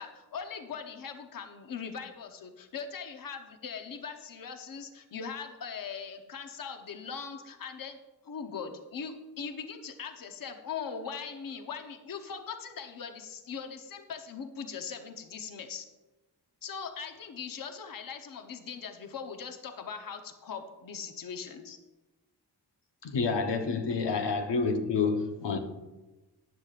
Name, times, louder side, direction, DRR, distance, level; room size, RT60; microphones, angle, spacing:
voice 1, 0.0-8.0 8.2-15.9 16.6-21.8, left 6 dB, 55° left, 0.9 m, -40 dB
voice 2, 23.0-25.6, left 4 dB, 85° left, 1.0 m, -28 dB
14.0 x 10.5 x 2.5 m
wide cardioid pair, 145°, 41 cm